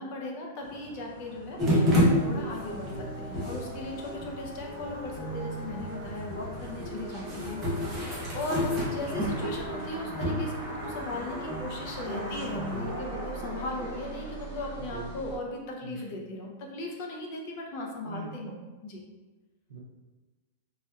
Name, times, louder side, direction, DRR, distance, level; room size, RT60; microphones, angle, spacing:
voice 1, 0.0-19.0, left 2 dB, 35° left, 0 dB, 0.5 m, -37 dB
sound 1, 0.6-15.4, right 1 dB, 35° right, 1.2 m, -42 dB
sound 2, 1.6-12.9, equal, 15° right, 0.7 m, -31 dB
voice 2, 2.8-3.4 14.9-15.1 15.8-16.0 18.1-18.4 19.7-19.8, right 4 dB, 85° right, 0 dB, 0.6 m, -42 dB
3.3 x 2.7 x 2.3 m, 1.3 s
supercardioid pair, 175°, 0 cm